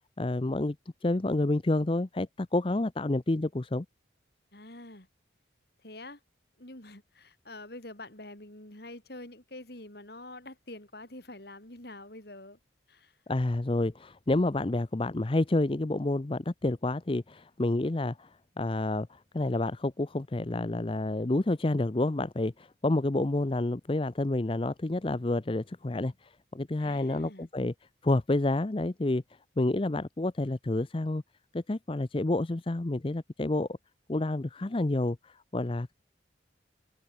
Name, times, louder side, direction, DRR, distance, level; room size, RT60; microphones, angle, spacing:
voice 1, 0.2-0.8 1.0-3.9 13.3-18.3 18.6-27.7 28.0-29.2 29.6-31.2 31.5-33.7 34.1-35.9, left 2 dB, 30° left, 0.6 m, -29 dB
voice 2, 4.5-5.1 5.8-6.2 6.6-12.6 12.9-13.1 26.8-27.5, left 2 dB, 55° left, 3.7 m, -46 dB
head